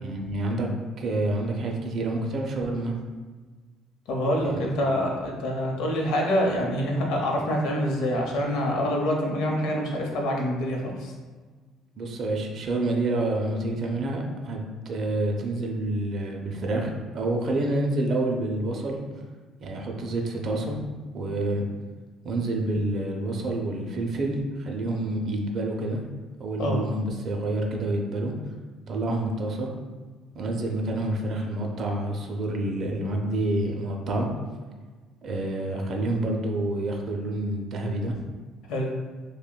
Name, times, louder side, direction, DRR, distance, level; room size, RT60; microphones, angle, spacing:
voice 1, 0.0-0.7 1.0-2.9 4.4-4.7 12.0-14.6 14.9-19.0 19.6-20.8 21.1-21.6 22.2-26.0 26.4-28.3 28.9-29.7 30.3-34.3 35.2-38.2, right 2 dB, 35° right, 1 dB, 0.4 m, -28 dB
voice 2, 4.1-11.1 26.6-26.8 38.7-38.9, equal, 65° left, 0 dB, 0.7 m, -26 dB
5.8 x 2.1 x 2.2 m, 1.4 s
cardioid pair, 180°, 0 cm